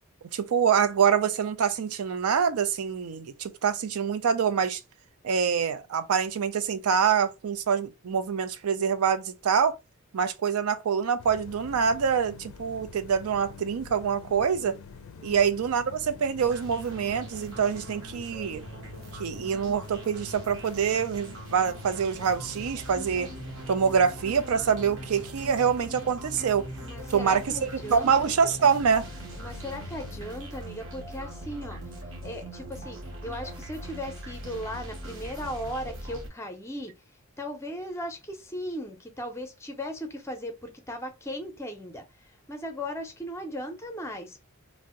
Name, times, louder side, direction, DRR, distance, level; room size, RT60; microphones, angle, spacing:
voice 1, 0.3-4.8 5.2-9.8 10.1-14.7 15.2-18.7 19.2-23.3 23.7-26.7 27.1-29.1, right 6 dB, 85° right, 0.4 m, -25 dB
sound 1, 11.2-30.2, left 5 dB, 70° left, 0.4 m, -47 dB
sound 2, 16.4-36.3, right 1 dB, 60° right, 0.8 m, -41 dB
voice 2, 26.8-28.1 29.4-31.8 32.2-36.9 37.4-42.0 42.5-44.4, equal, 15° left, 0.6 m, -37 dB
2.6 x 2.1 x 3.6 m
head